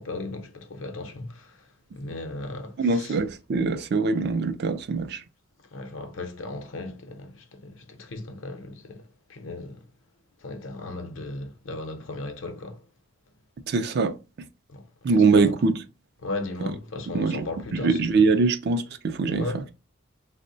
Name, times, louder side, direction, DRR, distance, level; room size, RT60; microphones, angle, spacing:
voice 1, 0.0-1.5 1.9-3.2 5.7-9.8 10.4-12.8 14.7-15.5 16.2-18.3 19.3-19.6, left 2 dB, 70° left, 0.6 m, -36 dB
voice 2, 2.8-5.2 13.7-14.2 15.0-15.8 17.1-19.6, right 4 dB, 55° right, 0.4 m, -23 dB
3.6 x 2.1 x 2.6 m
head